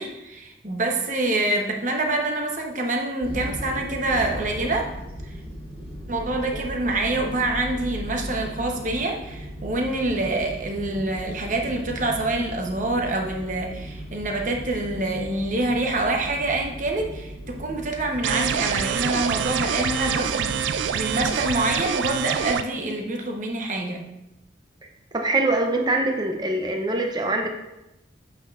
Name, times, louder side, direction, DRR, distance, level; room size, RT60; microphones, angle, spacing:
voice 1, 0.0-4.9 5.2-5.3 6.1-24.0, right 2 dB, 45° right, 2 dB, 0.8 m, -26 dB
sound 1, 3.2-21.5, equal, 5° right, 2.4 m, -37 dB
sound 2, 18.2-22.6, right 8 dB, 85° right, 0.3 m, -26 dB
voice 2, 25.1-27.5, right 2 dB, 25° right, 3 dB, 0.5 m, -23 dB
7.9 x 5.8 x 2.4 m, 0.92 s
head